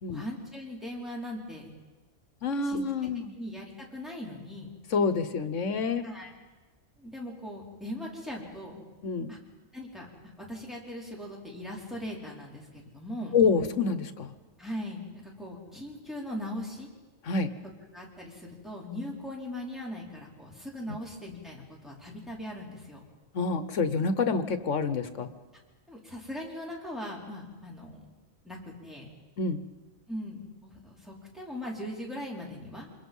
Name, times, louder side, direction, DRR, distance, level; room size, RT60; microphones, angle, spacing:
voice 1, 0.1-1.7 2.6-2.8 3.3-4.7 6.0-6.3 7.0-8.8 9.3-9.4 9.7-13.4 14.6-16.9 17.9-23.0 25.9-28.1 28.4-29.1 30.1-32.9, left 1 dB, ahead, -3 dB, 4.5 m, -40 dB
voice 2, 2.4-3.3 4.9-6.1 9.0-9.3 13.3-14.3 17.2-17.5 23.3-25.3 29.4-29.6, left 4 dB, 80° left, 12 dB, 1.5 m, -27 dB
27.0 x 22.0 x 5.6 m, 1.3 s
omnidirectional pair, 1.3 m